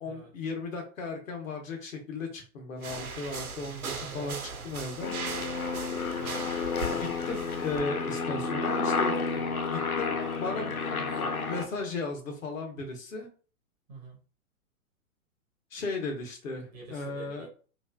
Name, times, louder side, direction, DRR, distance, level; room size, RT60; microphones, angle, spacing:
voice 1, 0.0-4.4 4.6-5.1 7.0-9.2 9.7-10.7 11.5-13.3 15.7-17.5, left 3 dB, 65° left, 2 dB, 1.0 m, -36 dB
sound 1, 2.8-7.8, right 4 dB, 85° right, 0.6 m, -38 dB
Aircraft, 5.0-11.7, left 4 dB, 90° left, 0.6 m, -31 dB
voice 2, 10.2-11.9 13.9-14.2 16.7-17.5, right 3 dB, 15° right, -1 dB, 0.4 m, -47 dB
3.1 x 2.4 x 2.2 m, 0.38 s
figure-of-eight pair, 110°, 42 cm